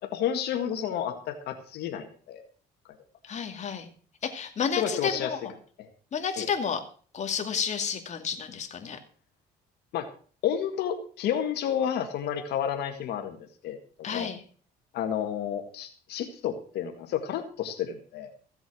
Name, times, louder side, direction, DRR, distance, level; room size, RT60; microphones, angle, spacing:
voice 1, 0.0-2.4 4.8-5.3 5.8-5.9 6.4-6.5 9.9-10.1 10.4-14.3 14.9-18.3, left 9 dB, 75° left, 5 dB, 1.8 m, -31 dB
voice 2, 3.2-3.9 4.2-5.5 6.1-6.8 7.1-9.0 14.0-14.4, left 6 dB, 45° left, 6 dB, 2.4 m, -31 dB
15.5 x 8.0 x 6.2 m, 0.43 s
cardioid pair, 110°, 17 cm